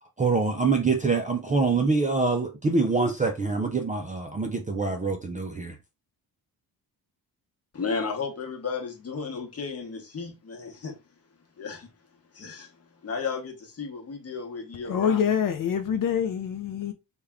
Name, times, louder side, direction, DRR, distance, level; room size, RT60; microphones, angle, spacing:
voice 1, 0.2-5.7, right 4 dB, 20° right, 0.3 m, -25 dB
voice 2, 7.7-10.9 11.6-11.9 12.4-12.7 13.0-15.2, left 5 dB, 40° left, 0.9 m, -33 dB
voice 3, 14.9-16.9, left 8 dB, 55° left, 0.5 m, -25 dB
3.4 x 2.3 x 3.5 m
wide cardioid pair, 140°, 40 cm